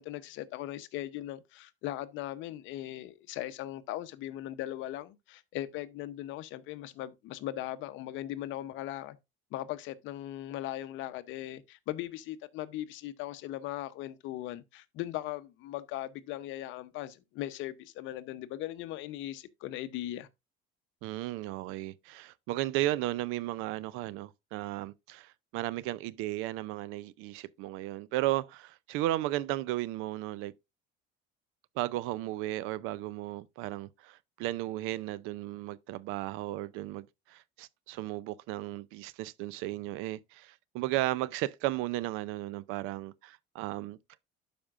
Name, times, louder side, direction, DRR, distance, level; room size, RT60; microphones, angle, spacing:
voice 1, 0.0-9.2 9.5-20.3, left 14 dB, 65° left, 0.8 m, -39 dB
voice 2, 21.0-30.5 31.8-44.0, right 16 dB, 75° right, 0.5 m, -35 dB
12.0 x 5.1 x 2.4 m
cardioid pair, 130°, 21 cm